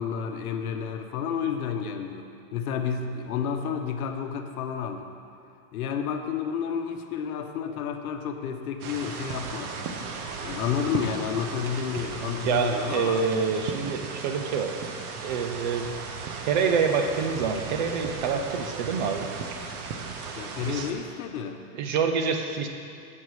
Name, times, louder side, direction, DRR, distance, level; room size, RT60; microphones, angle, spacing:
voice 1, 0.0-5.1 5.7-9.8 10.4-13.2 20.3-21.6, left 7 dB, 75° left, 5 dB, 1.1 m, -31 dB
sound 1, 8.8-20.9, right 5 dB, 80° right, 1.4 m, -36 dB
voice 2, 12.4-14.7 15.2-15.9 16.4-19.3 20.7-20.9 21.7-22.7, right 6 dB, 35° right, 5 dB, 0.5 m, -26 dB
16.0 x 5.5 x 4.8 m, 2.4 s
supercardioid pair, 175°, 43 cm